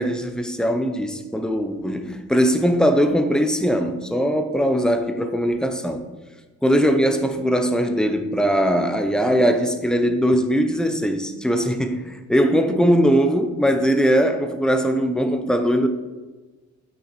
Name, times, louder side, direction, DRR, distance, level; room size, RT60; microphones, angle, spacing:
voice 1, 0.0-6.0 6.6-15.9, equal, ahead, 0.9 m, -20 dB
9.3 x 6.0 x 4.4 m
cardioid pair, 90°, 30 cm